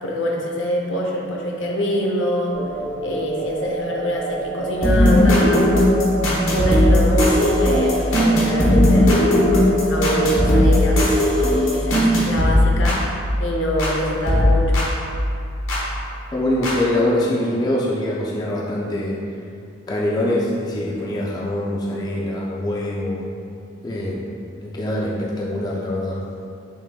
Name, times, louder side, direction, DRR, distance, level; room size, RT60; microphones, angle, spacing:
voice 1, 0.0-2.6 3.0-5.7 6.5-9.3 9.8-11.0 11.7-13.1 13.4-14.9, equal, 70° left, -1 dB, 0.7 m, -24 dB
sound 1, 2.5-11.9, right 1 dB, 40° right, 0.6 m, -28 dB
sound 2, 4.8-14.0 14.3-15.9 16.6-16.7, left 1 dB, 85° left, 1.0 m, -17 dB
voice 2, 16.3-19.3 19.9-23.3 23.8-24.3 24.6-26.2, left 1 dB, 20° left, -4 dB, 0.4 m, -24 dB
5.9 x 3.7 x 2.3 m, 2.4 s
head